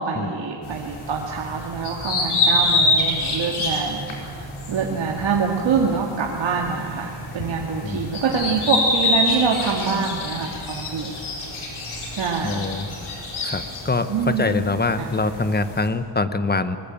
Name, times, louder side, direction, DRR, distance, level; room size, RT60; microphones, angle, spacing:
voice 1, 0.0-4.1 4.3-11.2 12.1-12.7 14.1-14.4 15.0-15.1, right 5 dB, 65° right, -1 dB, 2.3 m, -25 dB
sound 1, 0.6-15.9, left 2 dB, 85° left, 5.0 m, -27 dB
voice 2, 12.4-13.0 13.4-16.8, left 3 dB, 20° left, 11 dB, 1.1 m, -24 dB
21.5 x 21.0 x 8.8 m, 2.2 s
wide cardioid pair, 120°, 47 cm